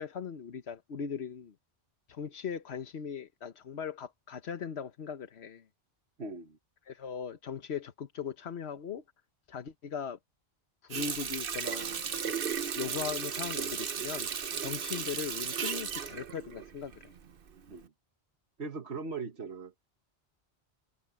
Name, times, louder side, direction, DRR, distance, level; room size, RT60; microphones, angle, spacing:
voice 1, 0.0-1.5 2.1-5.6 6.9-9.0 9.5-10.2 10.8-12.3 12.7-14.3 14.6-17.1, left 7 dB, 75° left, 1.3 m, -39 dB
voice 2, 6.2-6.6 17.7-17.9 18.6-19.7, right 4 dB, 85° right, 1.9 m, -39 dB
Water tap faucet, 10.9-17.3 17.7-17.8, right 7 dB, 60° right, 1.1 m, -35 dB
omnidirectional pair, 1.1 m